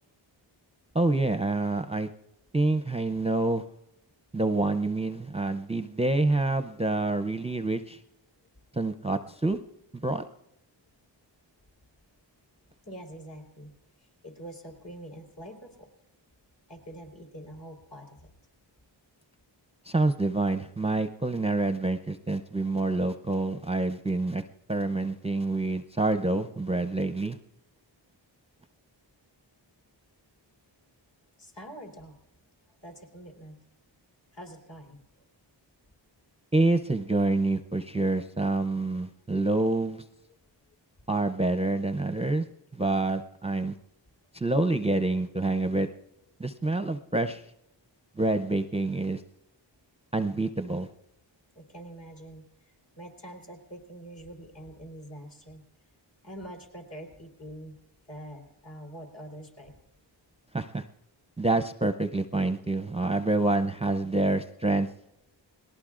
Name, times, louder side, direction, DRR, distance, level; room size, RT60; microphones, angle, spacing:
voice 1, 0.9-2.1 2.5-3.6 4.3-8.0 8.7-9.6 9.9-10.2 19.9-24.4 24.7-27.4 36.5-40.0 41.1-42.5 42.7-43.7 44.3-45.9 46.4-47.4 48.2-49.2 50.1-50.9 60.5-60.8 61.4-64.9, right 2 dB, 15° right, 8 dB, 0.5 m, -27 dB
voice 2, 12.8-15.9 16.7-18.3 31.4-32.2 32.7-33.6 34.3-35.3 40.3-40.4 51.5-55.6 56.2-57.8 58.1-59.8, right 1 dB, 65° left, -1 dB, 3.7 m, -45 dB
29.5 x 19.0 x 2.5 m, 0.81 s
wide cardioid pair, 70°, 46 cm